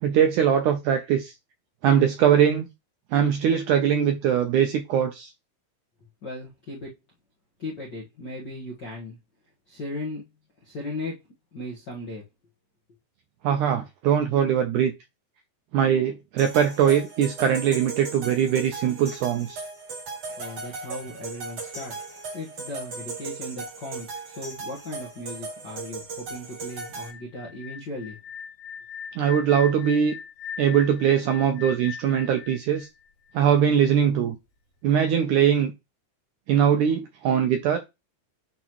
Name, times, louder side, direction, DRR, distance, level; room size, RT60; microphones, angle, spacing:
voice 1, 0.0-1.3 1.8-2.7 3.1-5.3 13.4-14.9 15.7-19.6 29.2-30.2 30.6-32.9 33.3-34.4 34.8-35.7 36.5-37.8, right 8 dB, 80° right, 1.8 m, -21 dB
voice 2, 6.2-7.0 7.6-9.2 9.7-10.3 10.6-11.2 11.5-12.2 20.4-22.0 22.3-28.2, left 2 dB, 60° left, 1.1 m, -37 dB
sound 1, 16.4-27.1, right 4 dB, 50° right, 4.8 m, -37 dB
sound 2, 26.7-33.6, left 7 dB, 75° left, 2.9 m, -40 dB
10.0 x 3.7 x 3.1 m
omnidirectional pair, 4.3 m